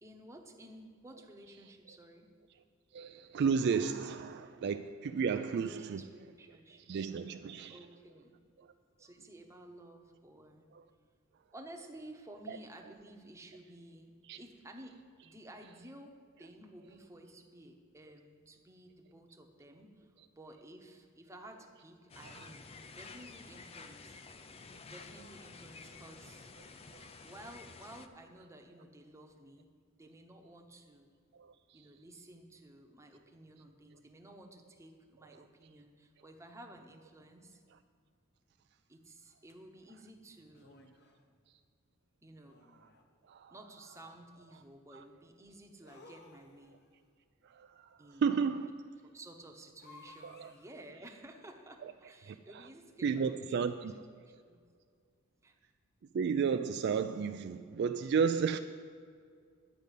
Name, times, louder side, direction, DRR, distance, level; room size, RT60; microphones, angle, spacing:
voice 1, 0.0-2.3 4.4-4.6 5.3-6.9 7.7-8.3 9.0-10.6 11.5-14.1 14.4-14.9 15.2-24.2 24.8-26.5 27.2-29.7 30.0-31.1 31.7-37.6 38.9-40.8 42.2-42.6 43.5-46.7 48.0-48.4 49.0-53.5 54.4-54.6 55.4-55.6, right 1 dB, 15° right, 0.9 m, -53 dB
voice 2, 2.9-6.0 6.9-7.8 8.6-8.7 10.7-10.8 12.5-12.6 14.3-14.4 22.3-22.4 26.9-27.0 31.4-31.8 43.3-43.5 44.9-45.0 47.4-47.9 48.2-48.7 50.2-50.5 51.8-51.9 52.2-52.7 53.0-53.9 56.1-58.6, right 6 dB, 50° right, 0.3 m, -33 dB
sound 1, 22.1-28.1, left 4 dB, 30° left, 0.4 m, -51 dB
sound 2, 39.5-39.6 40.5-41.2 42.4-43.2 45.8-46.9 49.8-50.9, left 2 dB, 50° left, 1.0 m, -58 dB
10.5 x 5.3 x 8.3 m
head